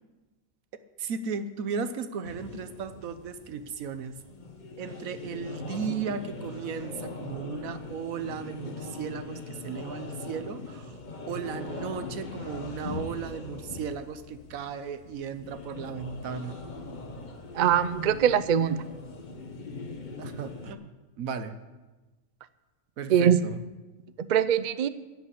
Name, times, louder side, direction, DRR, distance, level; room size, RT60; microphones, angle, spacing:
voice 1, 1.0-4.1 4.8-11.0 11.3-16.6 20.2-21.6 23.0-23.6, right 6 dB, 80° right, 11 dB, 1.3 m, -35 dB
sound 1, 2.2-20.7, left 3 dB, 35° left, 1.1 m, -41 dB
voice 2, 17.5-18.8 23.1-23.4 24.2-24.9, right 9 dB, 55° right, 14 dB, 0.5 m, -22 dB
11.0 x 8.2 x 9.8 m, 1.2 s
omnidirectional pair, 1.4 m